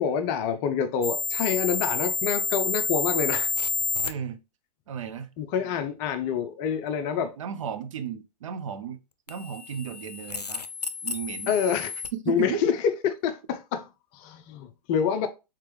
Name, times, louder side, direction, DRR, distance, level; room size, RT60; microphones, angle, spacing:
voice 1, 0.0-3.5 5.4-7.3 11.5-11.9 12.3-15.3, left 7 dB, 30° left, 0.5 m, -27 dB
sound 1, 1.0-4.1 9.3-12.1, left 3 dB, 85° left, 0.5 m, -29 dB
voice 2, 4.0-4.4 4.9-5.3 7.4-9.0 9.3-10.6 11.0-11.5 12.1-12.6, right 8 dB, 55° right, 0.6 m, -34 dB
4.5 x 3.7 x 3.2 m
figure-of-eight pair, 105°, 20 cm